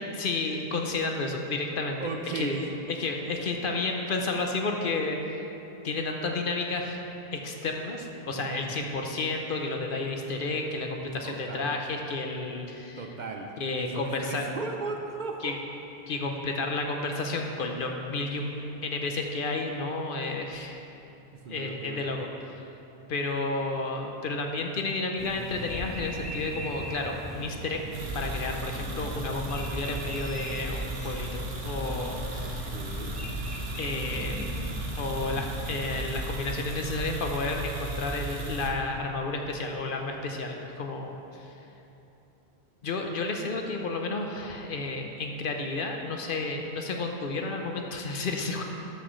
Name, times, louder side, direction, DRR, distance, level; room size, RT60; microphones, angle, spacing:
voice 1, 0.0-2.0 2.3-5.4 5.8-7.0 7.3-13.1 13.6-14.4 15.4-15.6 16.1-20.8 21.5-22.6 23.1-27.8 28.1-32.7 33.8-34.4 35.0-41.6 42.8-48.6, left 3 dB, 60° left, 3 dB, 0.8 m, -31 dB
voice 2, 2.0-2.7 8.3-8.9 11.2-11.7 13.0-15.6 21.3-22.1 32.4-33.2, right 4 dB, 55° right, 3 dB, 0.7 m, -36 dB
sound 1, 25.2-36.1, left 1 dB, ahead, 1.0 m, -39 dB
sound 2, 27.9-38.7, right 2 dB, 70° right, 1.2 m, -35 dB
12.5 x 6.2 x 3.1 m, 2.9 s
omnidirectional pair, 1.0 m